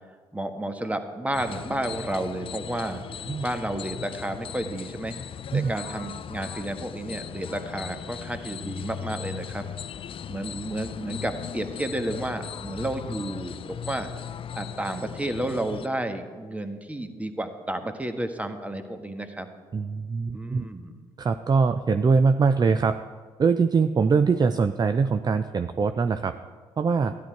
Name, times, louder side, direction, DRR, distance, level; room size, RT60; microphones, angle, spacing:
voice 1, 0.3-3.0 3.4-5.1 5.5-9.6 10.3-14.1 14.5-19.5 20.3-20.9, right 1 dB, 10° right, 7 dB, 1.4 m, -31 dB
sound 1, 1.3-15.9, left 8 dB, 45° left, 0.5 m, -38 dB
voice 2, 19.7-20.7 21.2-23.0 23.4-26.3 26.8-27.1, right 5 dB, 30° right, 10 dB, 0.5 m, -22 dB
13.0 x 10.5 x 4.6 m, 1.5 s
hypercardioid pair, 50°, 13 cm